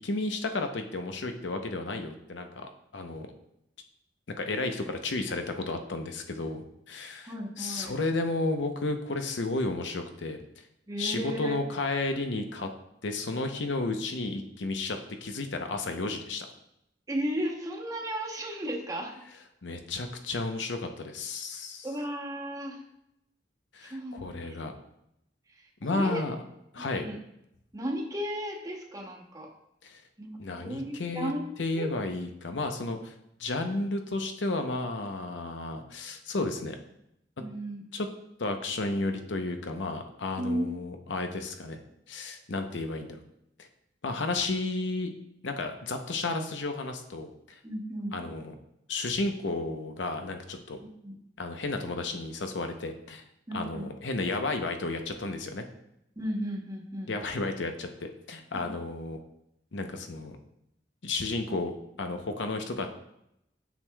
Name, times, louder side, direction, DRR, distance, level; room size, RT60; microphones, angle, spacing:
voice 1, 0.0-3.3 4.4-10.4 11.0-12.7 13.0-16.5 19.6-21.9 23.7-24.7 25.8-26.3 26.7-27.1 29.8-30.0 30.4-31.3 31.6-33.1 33.4-36.8 37.9-38.1 38.4-41.8 42.1-43.2 43.6-43.7 44.0-45.1 45.4-47.3 48.1-48.5 48.9-50.8 51.4-53.2 53.5-55.7 57.1-59.2 59.7-60.4 61.0-61.7 62.0-62.9, left 2 dB, 85° left, 6 dB, 0.8 m, -32 dB
voice 2, 7.2-8.0 10.9-11.6 17.1-19.1 21.8-22.8 23.8-24.6 25.9-26.2 26.9-27.2 27.7-29.5 30.2-31.5 31.7-31.9 37.4-37.8 40.4-40.7 47.6-48.2 51.0-51.2 53.5-53.9 56.2-57.1 58.6-58.7, equal, 20° right, 0 dB, 1.0 m, -34 dB
9.2 x 6.3 x 2.3 m, 0.81 s
head